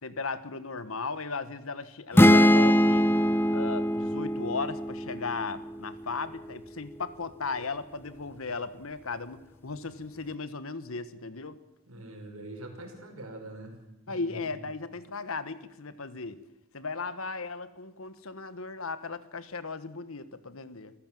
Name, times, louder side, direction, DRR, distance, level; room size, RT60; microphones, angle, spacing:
voice 1, 0.0-3.1 3.5-11.6 14.1-16.4 16.7-20.9, left 4 dB, 70° left, 13 dB, 1.4 m, -36 dB
sound 1, 2.2-5.9, equal, 10° left, 0.7 m, -22 dB
voice 2, 11.9-13.7 14.1-14.6, right 1 dB, 80° right, 4 dB, 5.4 m, -44 dB
26.5 x 15.0 x 7.7 m, 0.93 s
head